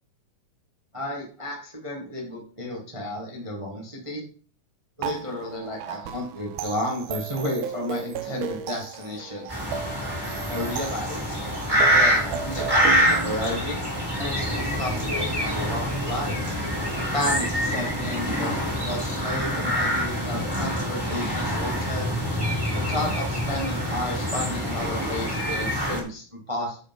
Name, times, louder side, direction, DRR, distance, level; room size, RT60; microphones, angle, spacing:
voice 1, 0.9-4.3 5.0-9.5 10.5-11.2 11.9-13.8 14.2-16.3 17.1-22.1 22.7-26.8, left 1 dB, 35° right, -1 dB, 0.5 m, -32 dB
sound 1, 5.0-13.4, right 7 dB, 75° right, 2.2 m, -35 dB
sound 2, 9.5-26.0, equal, 10° right, 2.0 m, -26 dB
9.0 x 4.9 x 5.4 m, 0.42 s
omnidirectional pair, 3.9 m